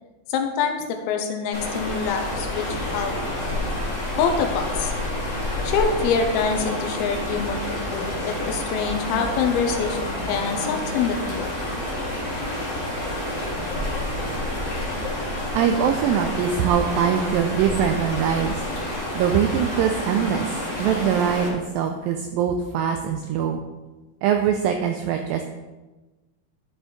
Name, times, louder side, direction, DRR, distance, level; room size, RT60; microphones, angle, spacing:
voice 1, 0.3-3.1 4.1-4.9 5.6-7.6 7.9-11.5, left 6 dB, 80° left, 5 dB, 2.5 m, -25 dB
sound 1, 1.5-21.5, left 1 dB, 35° left, 1.2 m, -29 dB
voice 2, 15.5-18.6 19.2-23.6 24.2-25.4, right 8 dB, 90° right, 5 dB, 2.0 m, -23 dB
11.0 x 5.1 x 3.8 m, 1.2 s
omnidirectional pair, 4.6 m